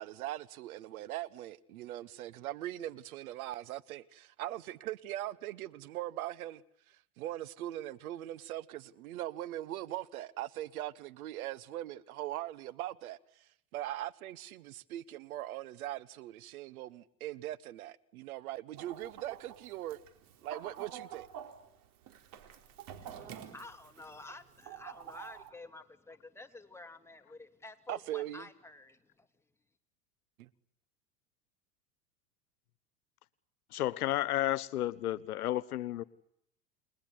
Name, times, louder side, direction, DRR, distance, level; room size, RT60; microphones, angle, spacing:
voice 1, 0.0-6.6 6.9-13.4 13.7-20.0 20.4-21.3 27.9-28.4 30.4-30.5, right 14 dB, 65° right, 1.3 m, -41 dB
Chicken rooster, 18.8-25.5, right 9 dB, 45° right, 3.8 m, -49 dB
voice 2, 23.0-29.3, left 2 dB, 5° left, 2.8 m, -50 dB
voice 3, 33.7-36.0, left 14 dB, 70° left, 1.3 m, -32 dB
29.5 x 21.0 x 9.8 m
hypercardioid pair, 90°, 46 cm